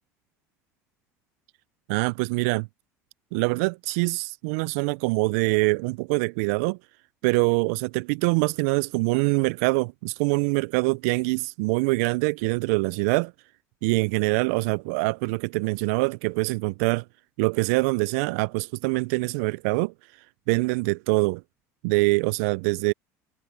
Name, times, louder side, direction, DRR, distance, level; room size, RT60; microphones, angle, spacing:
voice 1, 1.9-2.7 3.3-6.8 7.2-13.3 13.8-17.0 17.4-19.9 20.5-21.4 21.8-22.9, right 27 dB, 70° right, 0.4 m, -24 dB
hypercardioid pair, 75°, 8 cm